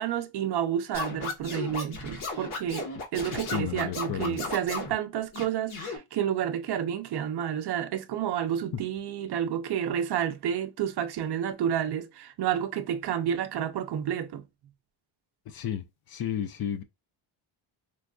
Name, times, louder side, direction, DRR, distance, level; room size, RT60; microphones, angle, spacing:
voice 1, 0.0-14.4, right 9 dB, 55° right, 0.5 m, -30 dB
Scratching (performance technique), 0.9-4.9 5.3-6.0, left 4 dB, 80° left, 1.4 m, -35 dB
voice 2, 3.3-4.4 15.5-16.8, left 9 dB, 50° left, 0.5 m, -33 dB
4.5 x 2.5 x 2.2 m
cardioid pair, 135°, 49 cm